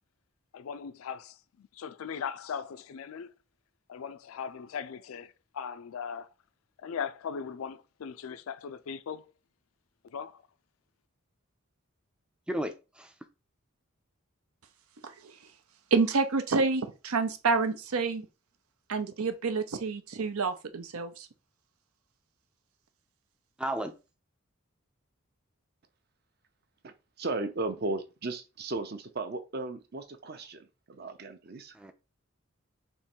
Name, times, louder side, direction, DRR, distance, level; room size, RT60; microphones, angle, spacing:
voice 1, 0.5-3.3 3.9-6.3 6.8-9.3 10.1-10.4, left 7 dB, 75° left, 0.4 m, -39 dB
voice 2, 12.5-13.1 23.6-23.9 31.7-31.9, right 1 dB, 5° right, 0.3 m, -33 dB
voice 3, 15.0-15.3 15.9-18.3 18.9-21.3, right 4 dB, 90° right, 0.7 m, -28 dB
voice 4, 26.8-31.7, right 2 dB, 45° right, 0.6 m, -36 dB
3.6 x 3.0 x 4.4 m
head